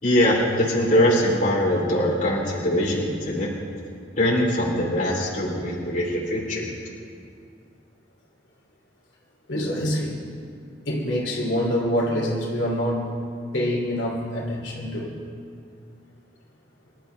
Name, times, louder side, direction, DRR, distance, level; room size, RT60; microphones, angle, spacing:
voice 1, 0.0-3.5 4.2-6.7, left 1 dB, 45° left, -4 dB, 3.5 m, -22 dB
voice 2, 9.5-10.2 10.8-13.1 13.5-15.1, equal, 75° left, -3 dB, 3.0 m, -25 dB
25.5 x 12.5 x 3.4 m, 2.3 s
head